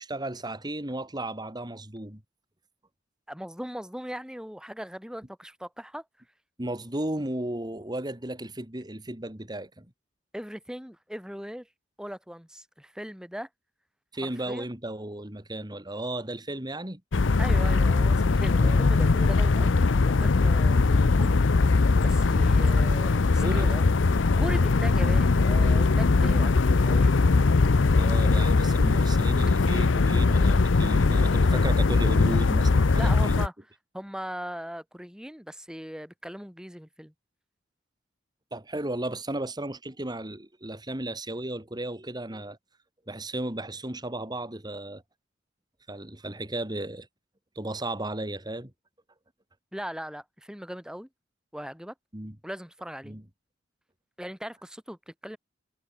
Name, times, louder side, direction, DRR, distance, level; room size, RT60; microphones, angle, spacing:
voice 1, 0.0-2.2 6.6-9.9 14.1-17.0 18.6-18.8 23.4-23.7 28.0-33.4 38.5-42.6 43.1-45.0 45.9-47.1 47.5-48.7 52.1-52.4 53.0-53.2, right 1 dB, 20° right, 3.0 m, -34 dB
voice 2, 3.3-6.0 10.3-11.7 12.0-13.5 14.2-14.7 17.4-19.8 20.0-21.4 22.0-23.8 24.4-27.1 32.9-33.5 33.9-37.1 49.7-51.1 51.5-51.9 52.4-53.2 54.2-55.4, equal, 5° right, 3.2 m, -39 dB
sound 1, 17.1-33.5, left 3 dB, 80° left, 0.7 m, -21 dB
head